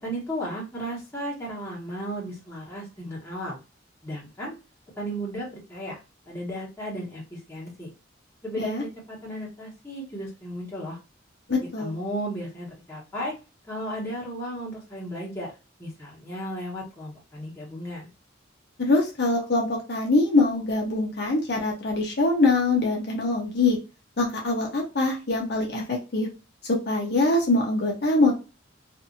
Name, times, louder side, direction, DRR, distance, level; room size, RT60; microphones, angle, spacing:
voice 1, 0.0-3.6 4.0-4.5 5.0-6.0 6.3-7.9 8.4-11.0 11.8-13.3 13.7-15.5 15.8-18.1, equal, 15° left, -5 dB, 1.2 m, -34 dB
voice 2, 11.5-11.9 18.8-23.8 24.2-26.3 26.7-28.3, left 2 dB, 55° left, 0 dB, 0.7 m, -23 dB
2.6 x 2.5 x 2.6 m, 0.30 s
head